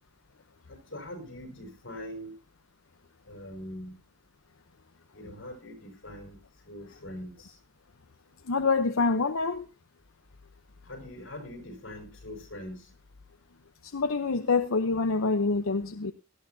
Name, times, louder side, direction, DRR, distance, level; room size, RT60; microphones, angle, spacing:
voice 1, 0.7-2.3 3.3-4.0 5.1-6.4 6.6-7.6 10.8-12.9, left 1 dB, 60° left, 5.4 m, -42 dB
voice 2, 8.4-9.7 13.8-16.1, left 4 dB, 85° left, 0.8 m, -26 dB
18.0 x 13.5 x 2.8 m
head